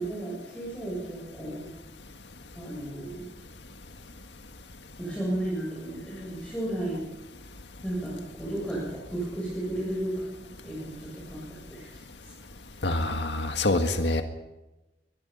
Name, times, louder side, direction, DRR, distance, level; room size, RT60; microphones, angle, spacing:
voice 1, 0.0-1.7 2.5-3.3 5.0-7.0 7.8-12.0, right 1 dB, 5° left, -5 dB, 7.4 m, -34 dB
voice 2, 12.8-14.2, left 2 dB, 80° left, 6 dB, 1.8 m, -25 dB
23.5 x 22.0 x 5.6 m, 1.0 s
head